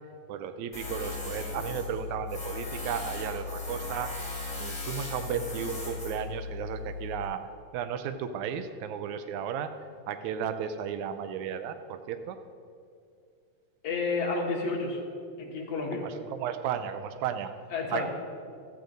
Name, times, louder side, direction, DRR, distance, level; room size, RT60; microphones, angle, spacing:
voice 1, 0.3-4.1 4.6-9.7 10.1-12.4 15.9-17.5 17.9-18.1, right 8 dB, 80° right, 9 dB, 1.9 m, -34 dB
Tools, 0.7-7.2, left 3 dB, 15° left, 2.7 m, -37 dB
voice 2, 13.8-15.0 15.4-16.0 17.7-18.1, left 4 dB, 55° left, -2 dB, 2.6 m, -30 dB
15.0 x 13.0 x 2.6 m, 2.3 s
omnidirectional pair, 3.5 m